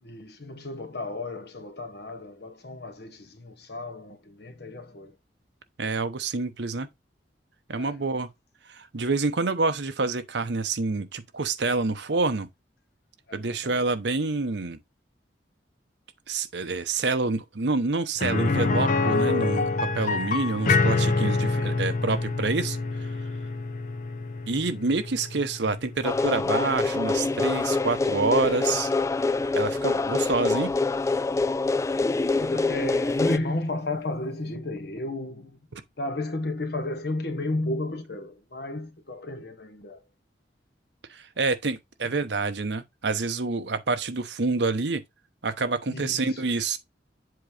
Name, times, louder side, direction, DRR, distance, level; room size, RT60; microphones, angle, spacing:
voice 1, 0.0-5.1 7.7-8.0 13.3-13.8 21.5-21.9 32.1-35.6 36.0-40.0 45.9-46.4, left 2 dB, 65° left, 1.4 m, -33 dB
voice 2, 5.8-6.9 7.7-8.3 8.7-12.5 13.3-14.8 16.3-23.1 24.5-28.9 29.5-30.7 41.1-45.0 45.4-46.8, right 3 dB, 75° right, 0.9 m, -27 dB
sound 1, 18.2-28.0 28.3-28.4 30.8-30.9, left 3 dB, 45° left, 0.9 m, -27 dB
sound 2, 26.0-33.4, left 3 dB, 15° left, 0.3 m, -25 dB
7.8 x 3.0 x 5.0 m
head